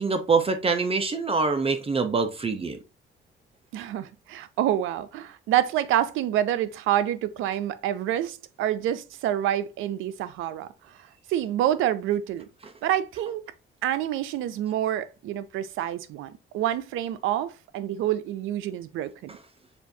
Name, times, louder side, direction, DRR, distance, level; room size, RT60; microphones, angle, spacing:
voice 1, 0.0-2.8, right 4 dB, 30° right, 0.6 m, -24 dB
voice 2, 3.7-10.7 11.0-12.5 12.8-13.4 13.8-19.3, right 12 dB, 90° right, 0.5 m, -27 dB
6.7 x 2.5 x 2.7 m
cardioid pair, 90°, 20 cm